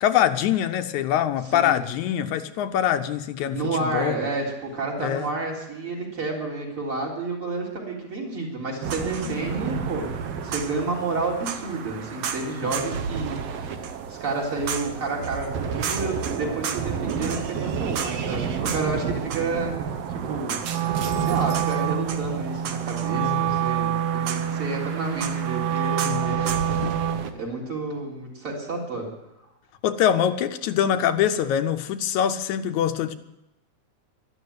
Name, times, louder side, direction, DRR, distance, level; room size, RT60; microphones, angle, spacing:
voice 1, 0.0-4.2 5.0-5.3 9.3-9.4 12.6-12.7 23.2-23.6 26.0-26.4 26.8-27.0 29.8-33.1, left 10 dB, 80° left, 8 dB, 2.1 m, -24 dB
voice 2, 3.5-13.4 14.1-20.6 21.2-26.6 27.3-29.1, right 3 dB, 45° right, -2 dB, 4.5 m, -30 dB
sound 1, 8.8-27.3, right 6 dB, 60° right, 2.0 m, -31 dB
Wind instrument woodwind instrument, 20.6-27.4, right 9 dB, 85° right, 1.3 m, -27 dB
12.5 x 12.0 x 9.5 m, 0.91 s
omnidirectional pair, 3.4 m